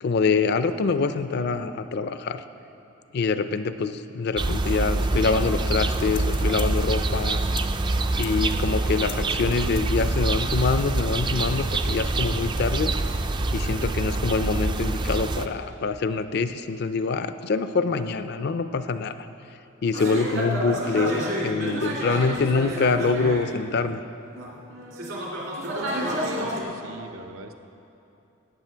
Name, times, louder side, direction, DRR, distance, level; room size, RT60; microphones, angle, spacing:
voice 1, 0.0-2.4 3.1-7.4 8.2-12.9 13.5-19.1 19.8-24.0, left 4 dB, 50° left, 11 dB, 0.4 m, -25 dB
sound 1, 4.4-15.5, right 2 dB, 20° right, 0.3 m, -25 dB
sound 2, 5.9-7.0 7.5-7.6 7.9-10.1 10.5-10.6, left 10 dB, 80° left, 1.1 m, -41 dB
sound 3, 19.9-23.9 24.3-26.6, equal, 70° right, 2.1 m, -30 dB
voice 2, 26.0-27.5, right 2 dB, 90° right, 6 dB, 0.8 m, -43 dB
14.0 x 9.1 x 4.5 m, 2.8 s
head